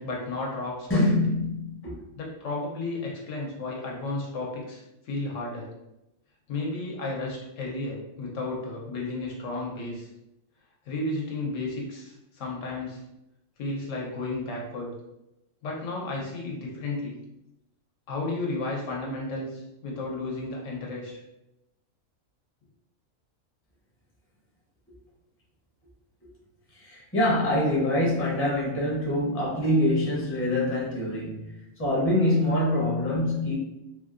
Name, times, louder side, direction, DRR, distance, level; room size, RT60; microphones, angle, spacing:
voice 1, 0.0-1.1 2.2-5.7 6.5-10.1 10.9-13.0 13.6-14.9 15.6-17.2 18.1-21.1, left 2 dB, 80° left, -2 dB, 1.1 m, -33 dB
voice 2, 0.9-2.0 26.7-33.5, left 1 dB, 15° left, -5 dB, 0.5 m, -25 dB
3.0 x 2.6 x 2.5 m, 0.88 s
omnidirectional pair, 1.4 m